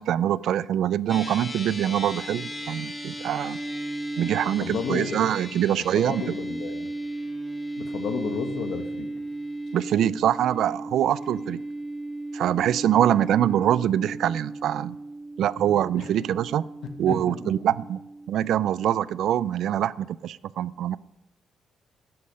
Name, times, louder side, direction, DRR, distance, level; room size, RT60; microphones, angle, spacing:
voice 1, 0.0-3.6 4.2-6.2 9.7-11.6 12.3-15.0 15.4-16.6 17.0-18.0 18.3-21.0, right 11 dB, 75° right, 19 dB, 0.4 m, -24 dB
sound 1, 1.1-19.6, right 1 dB, 15° left, 1.9 m, -36 dB
voice 2, 4.4-5.2 5.5-6.9 7.7-9.1 16.0-16.1 16.8-17.5, left 6 dB, 70° left, 6 dB, 1.6 m, -33 dB
14.0 x 10.5 x 5.5 m, 0.93 s
cardioid pair, 140°, 0 cm